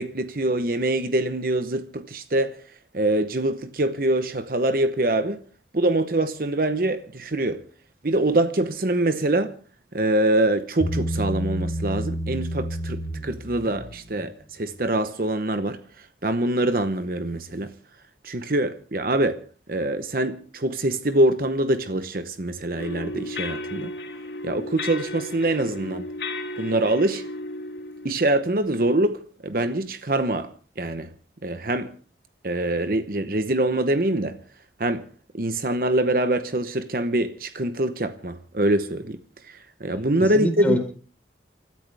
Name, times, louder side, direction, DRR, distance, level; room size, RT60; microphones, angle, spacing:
voice 1, 0.0-2.6 2.9-5.4 5.7-7.6 8.0-9.6 9.9-17.7 18.2-19.4 19.7-23.9 24.4-26.1 26.6-27.3 28.0-31.1 31.4-31.9 32.4-34.4 34.8-35.1 35.3-39.2 39.4-40.8, right 1 dB, 50° right, 0.9 m, -24 dB
Bass guitar, 10.8-14.2, equal, 35° left, 3.3 m, -29 dB
sound 1, 22.8-28.1, left 2 dB, 70° left, 3.2 m, -34 dB
voice 2, 39.9-40.8, equal, 10° left, 4.3 m, -26 dB
29.5 x 13.5 x 3.4 m
head